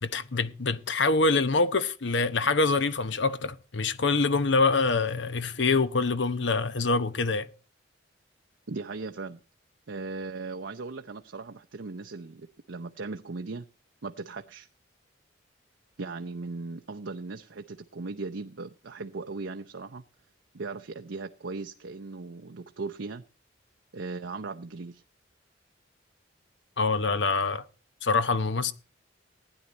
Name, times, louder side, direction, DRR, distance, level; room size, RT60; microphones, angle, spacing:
voice 1, 0.0-7.5 26.8-27.6 28.0-28.7, left 3 dB, 65° left, 0.9 m, -25 dB
voice 2, 8.7-9.4 9.9-13.7 14.0-14.7 16.0-20.0 20.5-23.2 23.9-25.0, right 3 dB, 70° right, 0.7 m, -38 dB
16.0 x 10.0 x 4.1 m
head